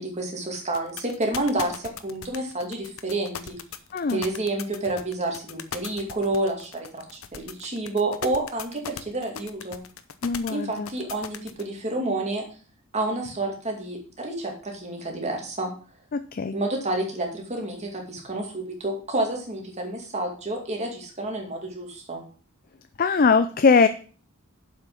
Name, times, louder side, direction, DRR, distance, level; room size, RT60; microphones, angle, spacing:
voice 1, 0.0-3.6 4.1-9.8 10.5-12.4 12.9-15.7 16.5-22.2, right 2 dB, 30° right, 1 dB, 2.3 m, -29 dB
sound 1, 0.7-11.6, left 8 dB, 70° left, 0.8 m, -37 dB
voice 2, 3.9-4.2 10.2-10.9 16.1-16.6 23.0-23.9, left 5 dB, 40° left, 10 dB, 0.5 m, -21 dB
7.7 x 5.8 x 6.0 m, 0.40 s
head